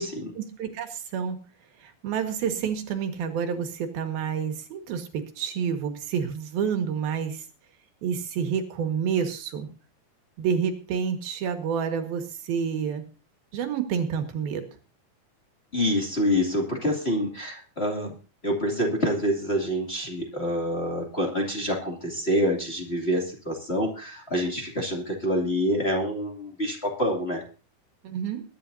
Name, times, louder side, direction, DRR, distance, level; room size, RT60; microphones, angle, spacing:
voice 1, 0.4-1.4 1.8-7.5 8.0-9.7 10.4-13.0 13.5-14.7 28.0-28.4, right 7 dB, 85° right, 6 dB, 3.6 m, -29 dB
voice 2, 15.7-18.2 18.4-27.4, equal, 20° left, 0 dB, 2.3 m, -27 dB
21.5 x 11.0 x 2.7 m, 0.35 s
omnidirectional pair, 4.1 m